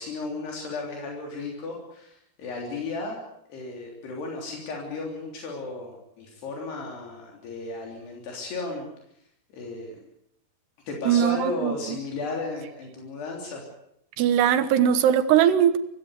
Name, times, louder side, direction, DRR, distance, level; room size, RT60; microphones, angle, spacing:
voice 1, 0.0-3.2 3.5-8.9 9.5-10.0 10.9-13.6, left 3 dB, 80° left, 0 dB, 5.5 m, -34 dB
voice 2, 11.1-12.0 14.2-15.8, right 9 dB, 85° right, 12 dB, 3.4 m, -20 dB
25.0 x 18.0 x 8.3 m, 0.77 s
omnidirectional pair, 4.6 m